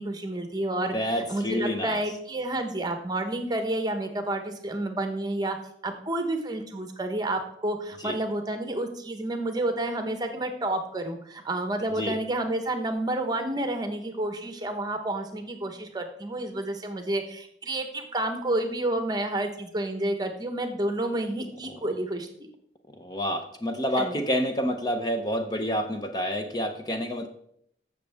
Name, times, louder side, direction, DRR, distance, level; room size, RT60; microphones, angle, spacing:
voice 1, 0.0-5.6 5.8-22.5 24.0-24.2, right 1 dB, 25° right, 6 dB, 1.1 m, -30 dB
voice 2, 0.9-2.0 8.0-8.2 12.0-12.2 23.0-27.3, equal, 20° left, 5 dB, 0.7 m, -28 dB
15.0 x 6.4 x 3.5 m, 0.71 s
head